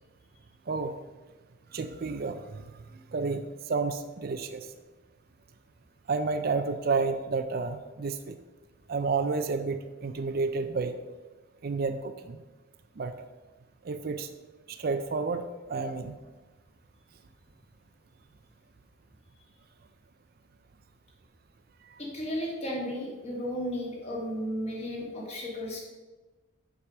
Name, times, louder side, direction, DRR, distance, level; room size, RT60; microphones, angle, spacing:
voice 1, 1.7-2.6 3.1-4.7 6.1-8.4 8.9-11.0 11.6-12.4 13.0-13.1 13.8-14.3 14.7-16.1, right 4 dB, 45° right, 9 dB, 0.4 m, -30 dB
voice 2, 22.0-25.8, equal, 30° left, -2 dB, 1.9 m, -34 dB
7.2 x 4.9 x 6.0 m, 1.3 s
head